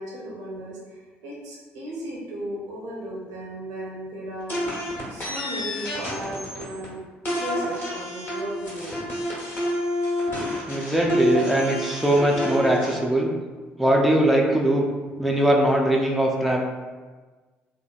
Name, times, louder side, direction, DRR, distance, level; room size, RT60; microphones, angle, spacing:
voice 1, 0.0-4.6 5.1-7.0 7.4-9.1, right 1 dB, 70° right, -3 dB, 0.6 m, -35 dB
sound 1, 4.5-6.9 7.3-13.0, equal, 35° left, 1.2 m, -28 dB
voice 2, 10.7-13.3 13.8-14.8 15.2-16.6, right 1 dB, ahead, -1 dB, 0.4 m, -21 dB
2.9 x 2.2 x 2.3 m, 1.3 s
hypercardioid pair, 50°, 6 cm